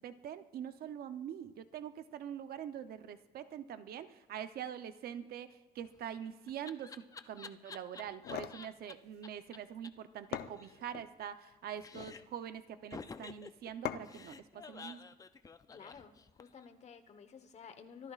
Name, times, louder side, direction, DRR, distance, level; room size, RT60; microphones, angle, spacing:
voice 1, 0.0-15.0, right 9 dB, 65° right, 10 dB, 0.7 m, -44 dB
Laughter, 5.8-8.9 9.2-9.3 9.5-9.6 9.8-9.9 10.2-11.5 11.8-12.4 12.9-16.7, left 5 dB, 20° left, 0.5 m, -50 dB
sound 1, 8.0-8.6 9.9-10.0 10.3-11.1 11.8-12.2 13.8-14.3, left 11 dB, 70° left, 0.7 m, -41 dB
voice 2, 15.7-18.1, left 6 dB, 40° left, 9 dB, 1.1 m, -52 dB
25.0 x 14.0 x 2.4 m, 1.1 s
cardioid pair, 155°, 17 cm